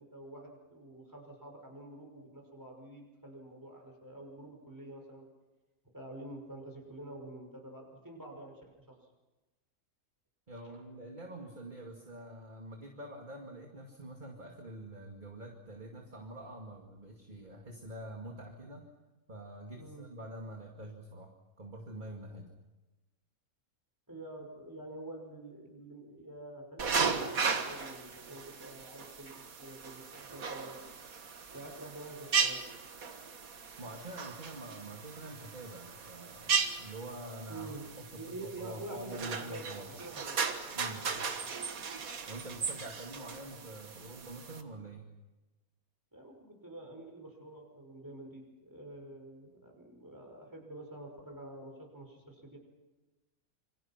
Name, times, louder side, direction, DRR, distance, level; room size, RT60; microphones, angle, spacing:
voice 1, 0.0-5.3 5.9-9.0 19.8-20.1 24.1-30.8 31.5-32.7 37.5-37.8 38.1-40.4 46.1-52.6, right 2 dB, 10° right, 1 dB, 5.7 m, -47 dB
voice 2, 10.5-18.9 19.3-22.5 33.8-37.7 38.0-39.9 40.7-41.1 42.3-45.1, right 1 dB, 30° right, 1 dB, 2.5 m, -46 dB
sound 1, 26.8-44.6, right 5 dB, 70° right, 2.0 m, -36 dB
27.5 x 25.5 x 5.9 m, 1.1 s
omnidirectional pair, 1.5 m